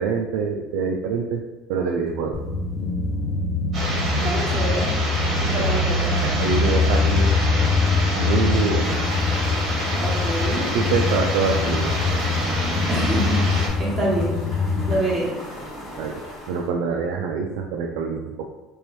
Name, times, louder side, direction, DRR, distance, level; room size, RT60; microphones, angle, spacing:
voice 1, 0.0-1.4 1.7-2.4 5.3-5.7 6.2-7.3 8.2-9.0 10.7-12.0 14.9-15.0 16.0-16.2 16.5-18.5, right 5 dB, 80° right, 1 dB, 0.3 m, -25 dB
sound 1, 2.3-15.0, left 4 dB, 45° left, 0.4 m, -23 dB
sound 2, 3.7-13.7, right 1 dB, 40° right, 1.2 m, -28 dB
voice 2, 4.2-4.9 5.4-6.2 8.6-8.7 9.9-10.7 12.9-14.4 14.8-15.3, right 1 dB, 20° right, -6 dB, 1.2 m, -26 dB
sound 3, 8.8-16.7, left 1 dB, 25° left, 1.4 m, -39 dB
3.1 x 3.0 x 3.1 m, 1.2 s
cardioid pair, 150°, 0 cm